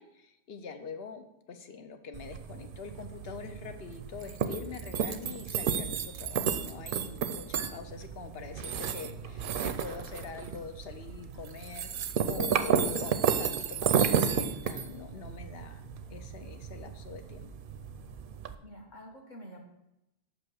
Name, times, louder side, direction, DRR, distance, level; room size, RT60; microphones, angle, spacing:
voice 1, 0.0-17.5, left 5 dB, 70° left, 7 dB, 0.9 m, -44 dB
sound 1, 2.1-18.6, right 7 dB, 60° right, 0.6 m, -32 dB
voice 2, 5.2-5.6 8.2-8.7 18.6-19.6, right 1 dB, 45° left, 0 dB, 1.3 m, -49 dB
5.7 x 5.2 x 6.3 m, 0.90 s
omnidirectional pair, 1.1 m